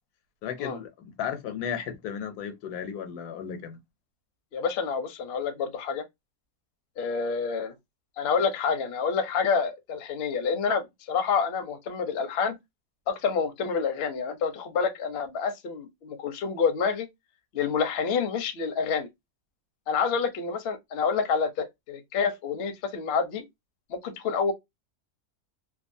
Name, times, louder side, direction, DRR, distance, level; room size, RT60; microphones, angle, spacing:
voice 1, 0.4-3.8, left 8 dB, 85° left, 1.2 m, -34 dB
voice 2, 4.5-6.0 7.0-7.7 8.2-12.6 13.1-17.1 17.5-19.1 19.9-23.5 23.9-24.5, left 5 dB, 60° left, 0.7 m, -28 dB
2.8 x 2.3 x 2.5 m
omnidirectional pair, 1.6 m